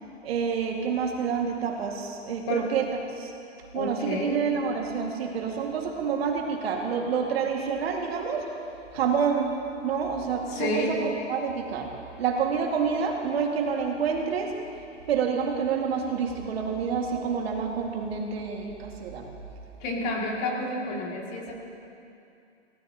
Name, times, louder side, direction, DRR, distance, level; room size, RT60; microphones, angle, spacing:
voice 1, 0.2-2.9 3.2-3.3 3.7-8.4 8.9-9.5 9.8-11.0 11.3-11.9 12.2-14.5 15.1-19.3, right 6 dB, 55° right, 1 dB, 2.0 m, -28 dB
voice 2, 2.5-2.8 3.7-4.5 10.5-11.0 19.8-21.5, left 1 dB, 30° left, -1 dB, 2.3 m, -30 dB
23.0 x 17.0 x 2.9 m, 2.6 s
hypercardioid pair, 150°, 37 cm